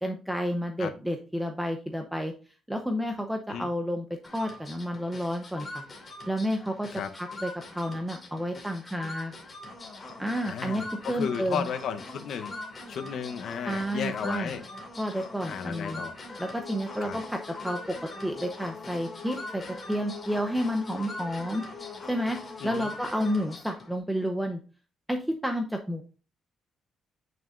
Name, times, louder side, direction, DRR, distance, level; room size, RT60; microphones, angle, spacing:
voice 1, 0.0-2.3 2.7-4.0 4.3-5.8 6.3-9.3 10.2-11.7 13.6-14.5 15.0-16.0 16.4-17.9 18.2-19.6 19.9-24.6 25.1-26.0, equal, 5° right, 0.8 m, -31 dB
sound 1, 4.2-23.9, left 2 dB, 25° left, 2.5 m, -42 dB
voice 2, 10.4-12.5 12.9-14.6 15.4-16.1 17.0-17.2 22.6-22.9, left 7 dB, 65° left, 0.8 m, -34 dB
8.9 x 6.3 x 2.5 m
cardioid pair, 155°, 0 cm